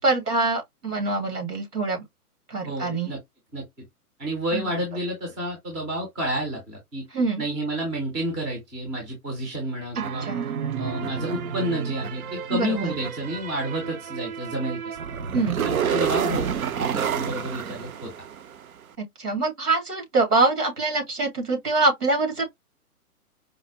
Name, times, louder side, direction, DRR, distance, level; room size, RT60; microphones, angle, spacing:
voice 1, 0.0-2.0 2.5-3.1 4.5-4.7 7.1-7.4 9.9-10.4 12.5-12.9 15.3-15.6 19.0-22.5, right 3 dB, 80° right, 2.8 m, -24 dB
voice 2, 2.6-3.2 3.5-3.6 4.2-7.0 7.4-10.3 10.8-15.0 15.6-16.5 16.8-18.1, right 1 dB, 5° right, 0.5 m, -30 dB
sound 1, 10.0-18.7, right 7 dB, 65° right, 0.7 m, -29 dB
4.7 x 2.1 x 2.8 m
hypercardioid pair, 135°, 46 cm